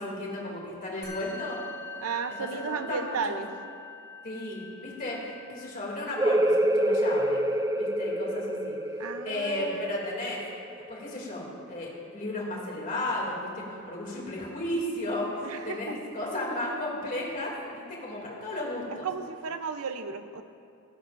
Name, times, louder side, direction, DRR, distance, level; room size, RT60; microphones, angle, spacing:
voice 1, 0.0-1.6 2.3-3.4 4.2-7.4 7.7-8.8 9.2-10.4 10.9-19.1, left 1 dB, 40° left, -3 dB, 2.6 m, -34 dB
Musical instrument, 1.0-10.6, left 3 dB, 20° left, 2.8 m, -46 dB
voice 2, 2.0-3.5 9.0-10.0 15.4-16.0 18.9-20.4, right 5 dB, 90° right, 9 dB, 0.7 m, -34 dB
sound 1, 6.2-11.5, right 1 dB, 15° right, 0.3 m, -27 dB
16.0 x 14.5 x 2.6 m, 2.4 s
head